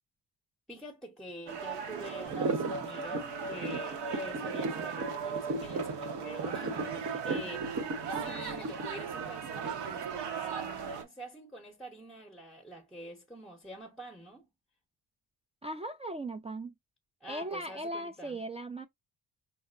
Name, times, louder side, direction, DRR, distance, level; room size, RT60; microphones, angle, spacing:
voice 1, 0.7-14.5 17.2-18.4, equal, ahead, 0.7 m, -46 dB
sound 1, 1.5-11.0, right 6 dB, 80° right, 0.9 m, -38 dB
sound 2, 2.3-10.1, right 3 dB, 45° right, 0.9 m, -35 dB
voice 2, 15.6-16.7 17.3-18.9, right 1 dB, 15° right, 0.3 m, -38 dB
5.7 x 2.1 x 2.3 m
cardioid pair, 90°, 40 cm